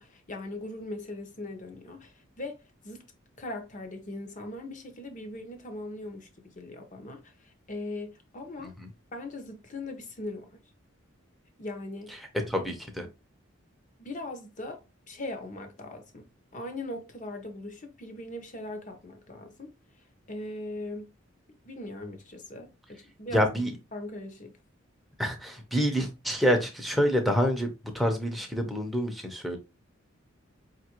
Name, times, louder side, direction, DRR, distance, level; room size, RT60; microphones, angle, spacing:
voice 1, 0.0-3.1 3.4-8.7 9.1-10.6 11.6-12.2 14.0-19.7 20.3-21.1 21.6-23.5 23.9-24.5, left 2 dB, 40° left, 0.8 m, -40 dB
voice 2, 12.5-13.1 23.3-23.7 25.2-27.7 27.9-29.6, equal, ahead, 0.6 m, -27 dB
5.0 x 2.5 x 2.9 m
head